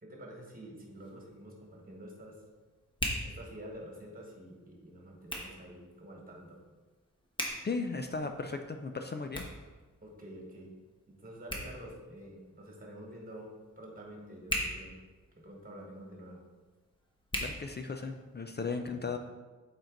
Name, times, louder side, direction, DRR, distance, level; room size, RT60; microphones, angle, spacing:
voice 1, 0.0-2.3 3.2-6.6 10.0-10.7 11.2-13.5 13.8-14.9 15.4-16.4 18.5-18.6 18.9-19.2, right 1 dB, 25° right, -1 dB, 1.6 m, -48 dB
Hands, 0.7-18.4, equal, 15° left, 1.2 m, -43 dB
voice 2, 7.6-9.4 17.4-19.2, left 4 dB, 35° left, 6 dB, 0.4 m, -36 dB
7.7 x 4.5 x 3.8 m, 1.3 s
wide cardioid pair, 120°, 33 cm